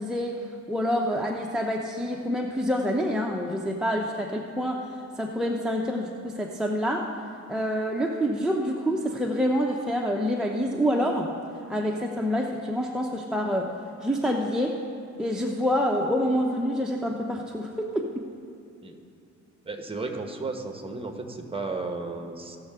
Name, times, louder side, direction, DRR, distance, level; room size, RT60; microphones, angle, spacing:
voice 1, 0.0-7.1 7.5-11.4 11.7-13.7 14.0-14.8 15.2-18.3, equal, ahead, -1 dB, 0.7 m, -27 dB
voice 2, 19.7-22.6, right 3 dB, 20° right, 4 dB, 1.1 m, -34 dB
16.5 x 6.6 x 3.6 m, 2.5 s
cardioid pair, 90°, 30 cm